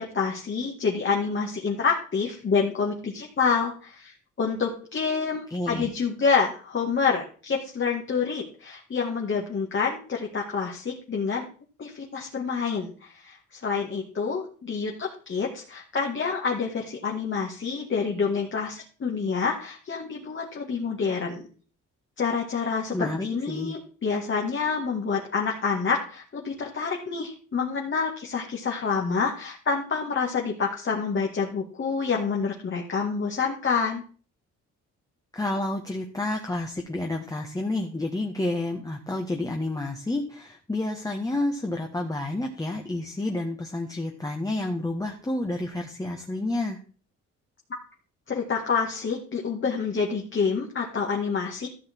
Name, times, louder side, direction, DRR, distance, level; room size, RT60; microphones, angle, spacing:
voice 1, 0.0-11.5 11.8-21.4 22.2-34.0 48.3-51.7, left 5 dB, 40° left, 0 dB, 2.1 m, -27 dB
voice 2, 5.5-5.9 22.9-23.7 35.3-46.8, left 2 dB, 10° left, 2 dB, 1.5 m, -30 dB
13.5 x 6.5 x 4.6 m, 0.40 s
cardioid pair, 90°, 30 cm